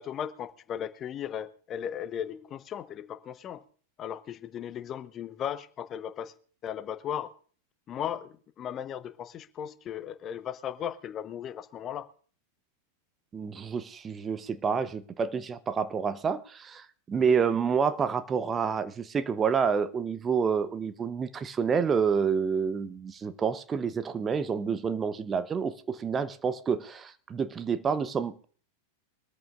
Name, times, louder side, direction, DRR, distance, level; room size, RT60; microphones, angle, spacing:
voice 1, 0.0-3.6 4.0-6.3 6.6-7.3 7.9-12.1, left 9 dB, 30° left, 0.8 m, -36 dB
voice 2, 13.3-28.4, right 6 dB, 20° right, 0.8 m, -28 dB
23.0 x 14.0 x 2.4 m
figure-of-eight pair, 90°, 0 cm